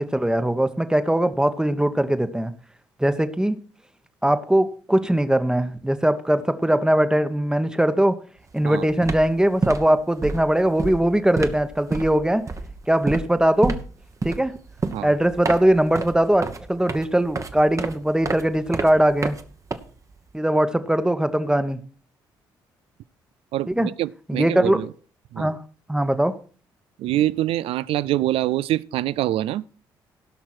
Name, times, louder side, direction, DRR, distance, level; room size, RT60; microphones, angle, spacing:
voice 1, 0.0-2.5 3.0-3.6 4.2-8.2 8.5-12.4 12.9-13.8 14.2-14.5 15.0-19.4 20.3-21.8 23.8-23.9 24.3-24.8 25.4-25.6 25.9-26.4, right 1 dB, 5° right, 1.1 m, -20 dB
sound 1, 8.4-8.6 8.9-20.3, right 3 dB, 30° right, 1.1 m, -30 dB
voice 2, 23.5-24.9 25.3-25.5 27.0-29.6, right 14 dB, 65° right, 0.4 m, -25 dB
17.0 x 5.9 x 4.4 m
hypercardioid pair, 45°, 11 cm